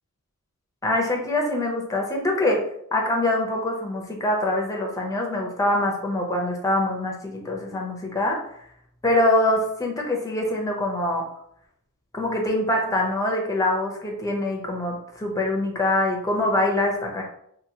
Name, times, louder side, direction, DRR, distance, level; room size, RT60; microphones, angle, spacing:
voice 1, 0.8-2.6 2.9-8.4 9.0-11.2 12.1-17.2, left 1 dB, 15° left, 0 dB, 0.6 m, -24 dB
2.9 x 2.6 x 2.8 m, 0.70 s
head